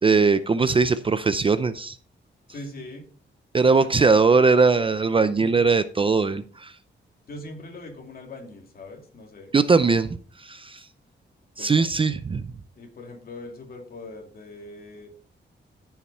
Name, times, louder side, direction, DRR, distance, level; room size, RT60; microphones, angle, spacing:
voice 1, 0.0-2.0 3.5-6.7 9.5-10.8 11.6-12.5, right 4 dB, 25° right, 12 dB, 0.5 m, -20 dB
voice 2, 2.5-3.1 3.8-4.4 5.4-5.5 7.3-9.5 11.6-11.8 12.7-15.1, left 2 dB, 50° left, 2 dB, 2.8 m, -41 dB
14.0 x 5.8 x 4.2 m, 0.43 s
wide cardioid pair, 150°, 20 cm